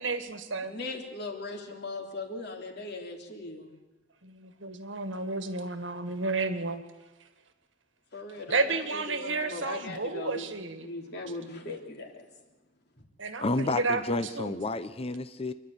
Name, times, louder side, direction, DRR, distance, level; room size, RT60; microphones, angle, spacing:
voice 1, 0.0-0.7 4.2-6.8 8.5-10.9 13.2-14.5, right 3 dB, 80° right, 9 dB, 1.8 m, -32 dB
voice 2, 0.6-3.7 8.1-10.5 10.8-12.2, left 3 dB, 60° left, 2 dB, 3.4 m, -39 dB
voice 3, 13.4-15.5, left 2 dB, 30° left, 12 dB, 0.7 m, -30 dB
27.5 x 11.5 x 9.7 m, 1.1 s
head